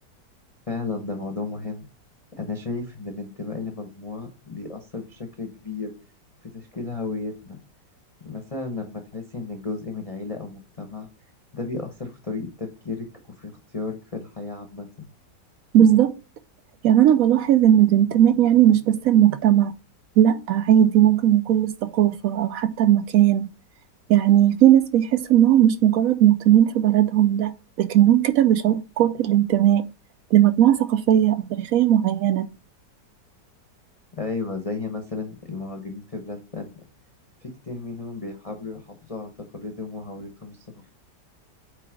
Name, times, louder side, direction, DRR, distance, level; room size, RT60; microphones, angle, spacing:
voice 1, 0.7-1.9 2.4-5.9 6.4-7.6 8.2-11.1 11.5-13.1 13.4-15.1 34.1-36.8 37.4-40.9, left 3 dB, 30° left, 0.7 m, -33 dB
voice 2, 15.7-16.1 16.8-19.7 20.2-23.5 24.1-29.8 30.3-32.5, right 11 dB, 75° right, 0.8 m, -18 dB
8.5 x 3.3 x 4.9 m
omnidirectional pair, 1.9 m